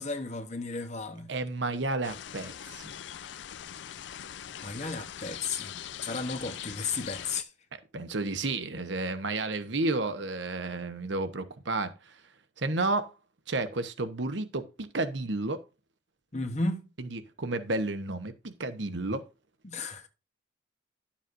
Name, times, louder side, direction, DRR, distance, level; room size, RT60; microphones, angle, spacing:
voice 1, 0.0-1.3 4.6-5.8 6.0-7.5 16.3-16.8 19.6-20.1, left 3 dB, 35° left, 1.0 m, -34 dB
voice 2, 1.3-2.9 7.9-12.2 12.6-13.1 13.5-15.6 17.0-19.2, right 2 dB, 75° right, 1.0 m, -31 dB
sound 1, 2.0-7.4, left 10 dB, 70° left, 0.4 m, -42 dB
11.0 x 7.2 x 2.6 m
head